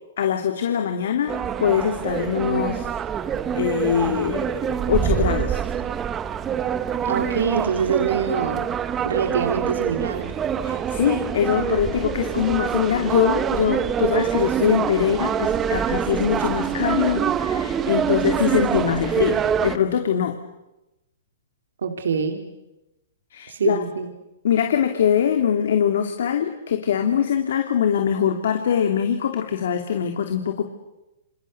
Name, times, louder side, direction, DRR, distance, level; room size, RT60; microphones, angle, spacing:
voice 1, 0.2-2.9 3.6-4.5 4.9-5.6 10.6-20.4 23.3-23.8 24.4-30.7, left 8 dB, 70° left, 5 dB, 2.7 m, -22 dB
sound 1, 1.3-19.8, right 8 dB, 20° right, 1.3 m, -25 dB
voice 2, 7.0-8.7 9.0-10.3 21.8-22.5 23.5-24.1, right 6 dB, 85° right, 5 dB, 3.4 m, -24 dB
29.0 x 27.5 x 6.8 m, 0.96 s
hypercardioid pair, 145°, 0 cm